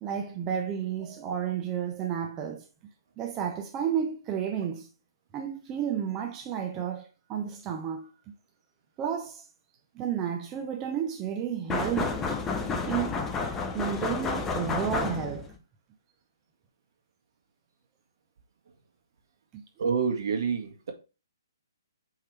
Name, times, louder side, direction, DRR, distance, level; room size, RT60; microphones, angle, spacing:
voice 1, 0.0-2.7 3.2-4.9 5.3-8.1 9.0-9.4 9.9-12.2 12.9-13.2 13.7-15.5 19.5-19.6, right 8 dB, 20° right, 0.7 m, -32 dB
sound 1, 11.7-15.6, left 4 dB, 15° left, 0.7 m, -30 dB
voice 2, 19.8-20.9, right 6 dB, 60° right, 1.7 m, -28 dB
8.0 x 3.8 x 3.3 m
hypercardioid pair, 145°, 2 cm